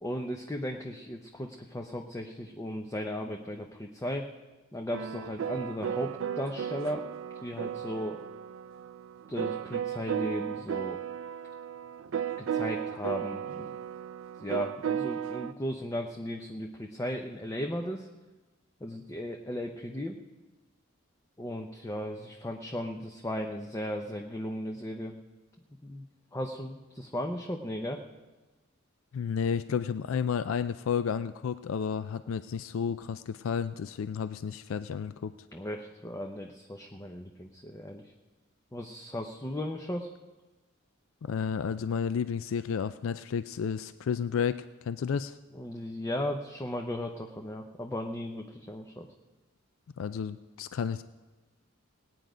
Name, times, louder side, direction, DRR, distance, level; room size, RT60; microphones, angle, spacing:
voice 1, 0.0-4.3 4.7-7.1 7.4-8.2 9.3-11.0 12.4-13.7 14.4-18.1 18.8-20.2 21.4-25.2 25.8-28.0 35.5-38.1 38.7-40.1 45.5-49.1, left 1 dB, 15° left, 3 dB, 0.6 m, -36 dB
sound 1, 4.9-15.5, right 8 dB, 70° right, 0.4 m, -35 dB
voice 2, 29.1-35.3 41.2-45.4 50.0-51.0, left 6 dB, 70° left, 13 dB, 0.4 m, -31 dB
19.0 x 9.2 x 5.0 m, 1.2 s
head